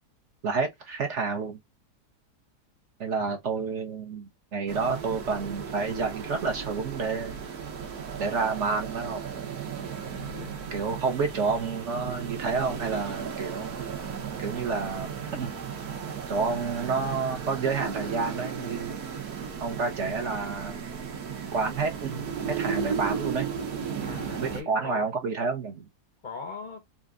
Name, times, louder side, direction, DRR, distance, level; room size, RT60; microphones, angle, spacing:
voice 1, 0.4-1.6 3.0-7.4 8.2-9.3 10.7-13.8 14.4-15.5 16.3-19.0 19.6-20.8 21.5-23.5 24.4-25.9, right 4 dB, 55° right, 1.0 m, -29 dB
sound 1, 4.7-24.6, right 7 dB, 70° right, 1.4 m, -35 dB
voice 2, 10.2-10.8 24.0-25.1 26.2-26.9, left 4 dB, 50° left, 0.5 m, -40 dB
4.3 x 2.5 x 2.4 m
omnidirectional pair, 1.7 m